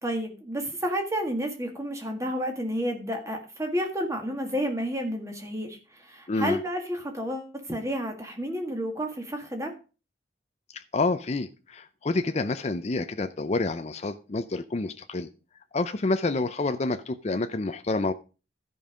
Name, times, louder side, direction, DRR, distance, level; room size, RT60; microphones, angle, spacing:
voice 1, 0.0-9.7, equal, 15° right, 3 dB, 1.8 m, -31 dB
voice 2, 6.3-6.6 10.7-15.3 15.7-18.1, left 3 dB, 35° left, 9 dB, 0.5 m, -28 dB
13.0 x 5.4 x 5.0 m, 0.34 s
head